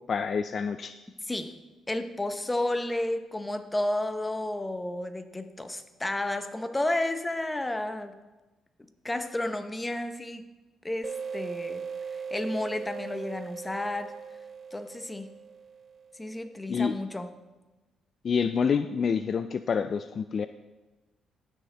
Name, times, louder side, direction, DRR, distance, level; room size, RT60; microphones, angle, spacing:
voice 1, 0.1-0.9 16.7-16.9 18.2-20.5, left 6 dB, 50° left, 11 dB, 0.3 m, -27 dB
voice 2, 1.3-1.6 1.9-8.1 9.0-10.4 10.8-11.8 12.3-14.1 14.7-15.3 16.2-17.3, left 1 dB, 15° left, 8 dB, 0.8 m, -31 dB
sound 1, 11.0-16.4, right 6 dB, 45° right, 0.4 m, -39 dB
17.0 x 6.4 x 3.4 m, 1.1 s
cardioid pair, 90°, 0 cm